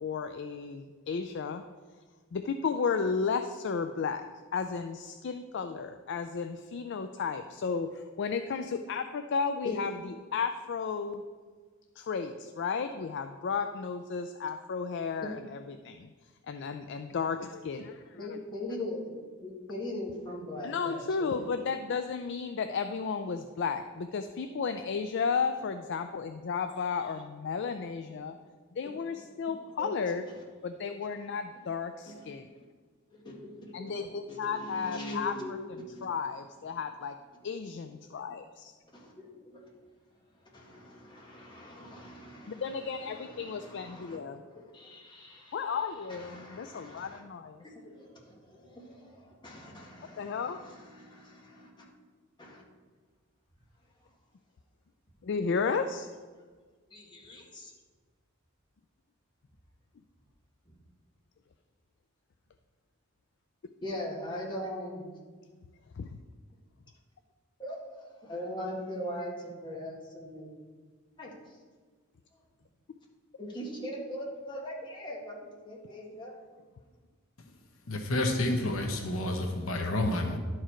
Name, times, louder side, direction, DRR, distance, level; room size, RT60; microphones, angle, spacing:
voice 1, 0.0-1.6 2.3-4.2 4.5-9.9 10.3-11.2 12.0-16.1 16.5-18.4 20.6-28.4 28.8-30.2 30.6-32.5 33.7-35.3 36.0-37.2 37.4-38.7 42.5-44.4 45.5-47.6 50.2-50.6 55.2-56.1 66.0-66.1, left 5 dB, 55° left, 8 dB, 0.4 m, -33 dB
voice 2, 18.1-19.1 19.4-21.5 29.8-29.9 32.0-32.3 33.1-36.1 38.9-39.6 40.4-45.8 46.1-47.2 47.6-51.8 52.4-52.6 56.9-57.7 60.6-60.7 63.8-65.1 67.6-67.8 68.2-70.5 71.2-71.6 72.3-72.4 73.4-76.3, left 1 dB, 20° left, -3 dB, 1.7 m, -41 dB
voice 3, 77.9-80.4, left 1 dB, 75° left, 4 dB, 1.0 m, -29 dB
11.5 x 4.7 x 4.4 m, 1.5 s
head